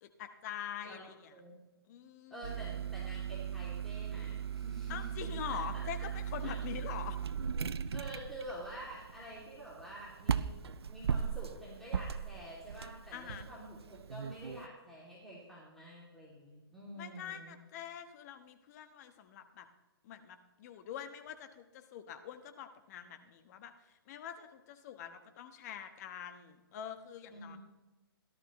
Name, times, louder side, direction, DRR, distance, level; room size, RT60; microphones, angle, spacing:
voice 1, 0.0-1.3 1.8-2.4 4.9-7.2 13.1-13.5 17.0-19.7 20.0-27.6, left 9 dB, 40° left, 8 dB, 1.2 m, -45 dB
voice 2, 1.3-1.6 2.3-5.0 5.5-6.1 6.4-6.5 7.9-10.5 10.9-17.6 27.3-27.6, right 1 dB, ahead, -7 dB, 2.7 m, -48 dB
sound 1, 2.4-14.7, right 7 dB, 80° right, 0.6 m, -38 dB
17.0 x 12.0 x 3.1 m, 1.1 s
hypercardioid pair, 140°, 13 cm